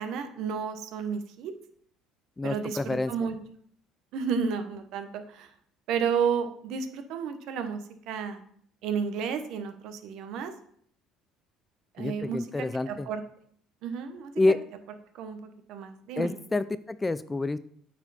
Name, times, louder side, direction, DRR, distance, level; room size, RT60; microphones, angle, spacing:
voice 1, 0.0-1.5 2.4-3.4 4.1-5.5 5.9-7.8 8.1-8.4 8.8-10.5 11.9-13.2 13.8-14.3 15.1-16.4, right 6 dB, 70° right, 8 dB, 1.0 m, -32 dB
voice 2, 2.4-3.1 12.0-13.1 14.4-14.6 16.2-17.6, left 2 dB, 15° left, 15 dB, 0.3 m, -28 dB
8.8 x 4.4 x 4.2 m, 0.63 s
cardioid pair, 115°, 0 cm